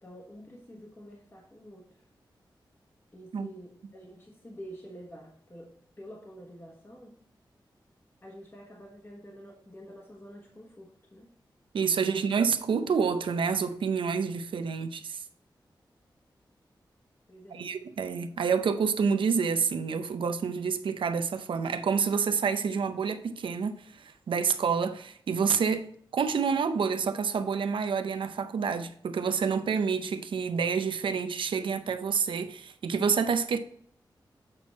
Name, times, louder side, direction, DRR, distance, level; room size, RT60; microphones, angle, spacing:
voice 1, 0.0-2.0 3.1-7.2 8.2-11.3 11.8-12.3 12.8-12.9 17.3-17.7, equal, 30° left, 1.3 m, -48 dB
voice 2, 11.7-15.2 17.5-33.6, right 6 dB, 90° right, 0.6 m, -28 dB
7.7 x 4.5 x 4.3 m
cardioid pair, 65°, 8 cm